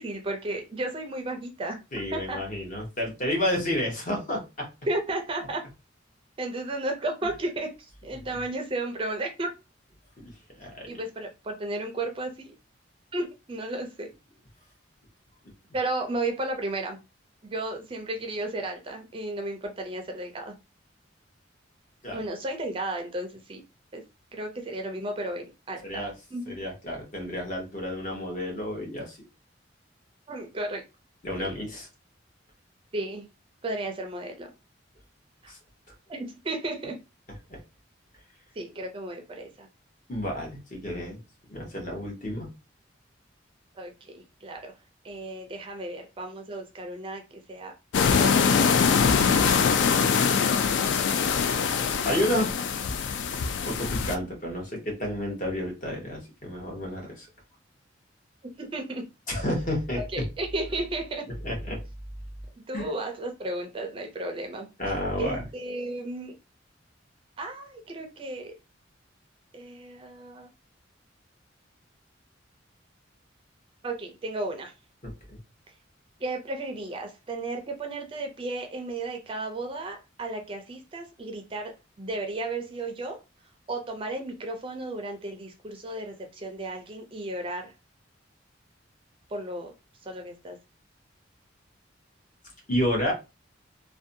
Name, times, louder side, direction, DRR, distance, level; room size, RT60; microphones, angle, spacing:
voice 1, 0.0-1.8 2.1-2.4 4.9-5.6 6.4-7.7 8.0-9.5 10.9-12.5 13.1-14.1 15.7-17.0 17.4-20.5 22.1-23.6 23.9-24.0 24.3-26.0 26.3-26.4 30.3-30.8 31.4-31.5 32.9-33.3 33.6-34.5 35.4-35.5 36.1-37.0 38.6-39.7 43.8-44.7 45.0-47.7 48.1-49.1 58.4-59.0 60.1-61.3 62.7-64.7 65.2-66.4 67.4-68.5 69.5-70.5 73.8-74.7 76.2-83.2 83.7-87.7 89.3-89.7 90.1-90.6, right 2 dB, 30° right, 4 dB, 0.4 m, -34 dB
voice 2, 1.9-4.7 10.2-11.0 22.0-22.2 25.8-26.1 26.5-29.2 31.2-31.9 35.5-35.6 37.5-37.6 40.1-41.2 41.5-42.5 49.4-49.6 52.0-52.5 53.6-57.3 59.3-60.2 61.4-61.8 62.7-62.9 64.8-65.5 75.0-75.4 92.7-93.1, left 1 dB, 40° left, 0 dB, 0.9 m, -30 dB
sound 1, 47.9-54.2, left 6 dB, 65° left, 0.3 m, -23 dB
2.6 x 2.1 x 2.6 m, 0.27 s
head